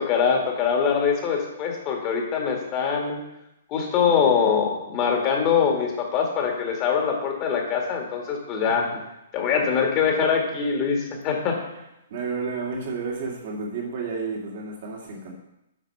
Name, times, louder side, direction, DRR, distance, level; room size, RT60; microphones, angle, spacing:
voice 1, 0.0-3.2 3.7-8.8 9.3-11.6, left 6 dB, 30° left, 1 dB, 1.9 m, -23 dB
voice 2, 4.0-4.4 8.7-9.0 12.1-15.3, right 4 dB, 50° right, 0 dB, 2.3 m, -32 dB
8.3 x 5.2 x 5.6 m, 0.87 s
figure-of-eight pair, 125°, 0 cm